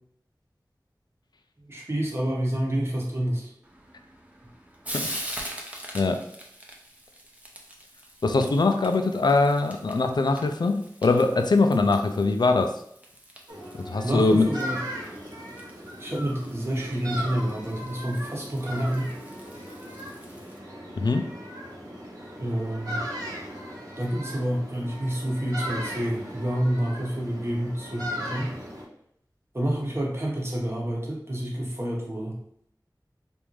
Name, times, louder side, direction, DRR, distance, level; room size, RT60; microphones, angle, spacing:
voice 1, 1.6-3.5 14.0-14.8 16.0-19.1 22.4-23.0 24.0-28.5 29.5-32.4, right 1 dB, 35° right, -2 dB, 1.0 m, -28 dB
Frying (food), 3.6-20.6, equal, 20° right, 0.7 m, -43 dB
voice 2, 8.2-12.7 13.8-14.5 21.0-21.3, left 3 dB, 75° left, 6 dB, 0.4 m, -22 dB
sound 1, 13.5-28.8, equal, 55° right, 1.0 m, -38 dB
3.5 x 2.5 x 3.1 m, 0.69 s
wide cardioid pair, 40°, 7 cm